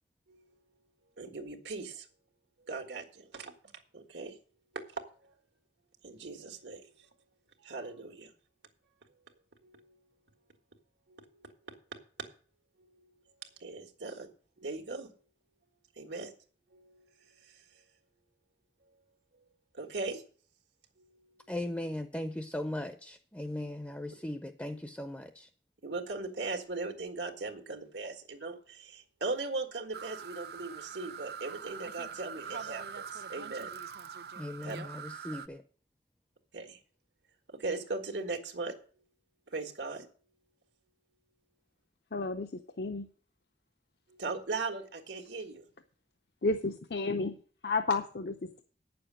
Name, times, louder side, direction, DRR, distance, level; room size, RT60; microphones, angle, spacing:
voice 1, 1.2-2.1 2.7-3.5 3.9-4.4 4.7-5.0 6.0-6.9 7.6-8.3 9.6-9.9 11.1-11.7 13.6-14.3 14.6-15.1 15.9-16.3 16.7-17.0 17.4-17.8 19.7-20.2 25.8-33.7 34.6-34.8 36.5-36.8 37.5-38.7 39.5-40.1 44.1-45.6, right 3 dB, 85° right, 1.7 m, -39 dB
voice 2, 21.5-25.5 34.4-35.6, left 1 dB, 10° left, 0.5 m, -38 dB
sound 1, 29.9-35.5, right 7 dB, 65° right, 0.6 m, -43 dB
voice 3, 42.1-42.5 42.8-43.1 46.4-47.4 47.6-48.6, left 3 dB, 60° left, 0.6 m, -31 dB
9.2 x 6.9 x 7.4 m
head